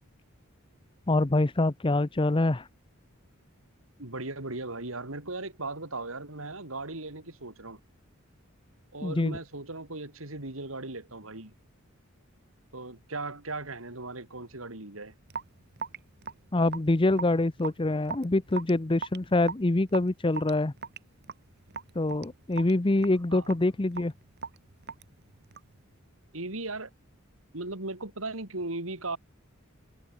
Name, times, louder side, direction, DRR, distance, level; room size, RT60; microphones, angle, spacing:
voice 1, 1.1-2.7 9.0-9.4 16.5-20.7 21.9-24.1, left 2 dB, 25° left, 0.7 m, -25 dB
voice 2, 4.0-7.8 8.9-11.5 12.7-15.1 23.3-23.5 26.3-26.9 27.5-29.2, right 2 dB, 75° right, 4.1 m, -37 dB
Raindrop / Drip, 15.3-25.8, right 5 dB, 55° right, 2.1 m, -41 dB
head